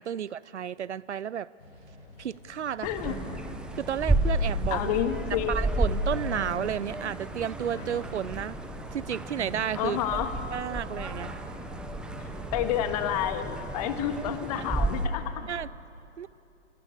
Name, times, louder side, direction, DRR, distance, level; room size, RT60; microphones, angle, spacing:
voice 1, 0.0-1.5 2.2-2.9 3.7-5.0 5.5-8.6 8.9-10.0 10.5-11.3 15.5-15.7 16.2-16.3, right 9 dB, 65° right, 21 dB, 0.6 m, -32 dB
sound 1, 1.6-15.6, left 1 dB, 55° left, 6.9 m, -47 dB
voice 2, 2.8-3.1 4.7-5.8 9.8-10.3 12.5-15.5, left 10 dB, 30° left, 9 dB, 1.6 m, -29 dB
sound 2, 2.8-15.1, right 1 dB, ahead, 0.7 m, -32 dB
sound 3, 5.9-14.2, right 3 dB, 30° right, 7.9 m, -50 dB
25.5 x 18.0 x 8.6 m, 2.6 s
figure-of-eight pair, 125°, 37 cm